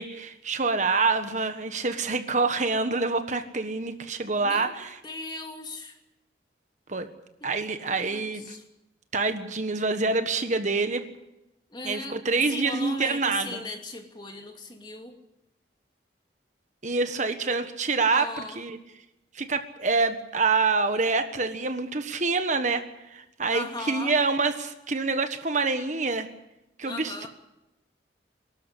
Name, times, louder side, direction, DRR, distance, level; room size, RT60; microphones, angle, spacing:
voice 1, 0.0-4.9 6.9-7.1 7.4-8.6 9.1-11.0 11.8-13.6 16.8-18.3 18.6-18.8 19.3-22.8 23.1-26.3 26.8-27.3, right 4 dB, 45° right, 8 dB, 1.4 m, -26 dB
voice 2, 4.4-4.7 5.0-6.0 7.9-8.6 11.7-15.2 18.1-18.6 23.5-24.2 26.9-27.3, left 2 dB, 25° left, 3 dB, 2.7 m, -38 dB
23.5 x 13.0 x 10.0 m, 0.90 s
head